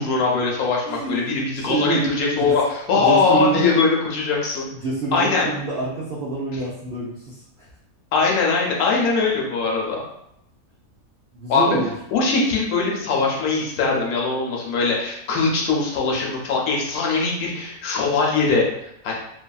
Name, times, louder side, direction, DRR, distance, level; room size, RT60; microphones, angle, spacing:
voice 1, 0.0-4.7 5.1-5.5 8.1-10.0 11.5-11.6 12.1-19.1, left 4 dB, 80° left, -2 dB, 1.1 m, -21 dB
voice 2, 0.9-2.1 2.5-2.6 2.9-3.6 4.8-7.4 11.3-11.9, right 3 dB, 60° right, -6 dB, 0.6 m, -26 dB
2.7 x 2.5 x 2.3 m, 0.78 s
omnidirectional pair, 1.6 m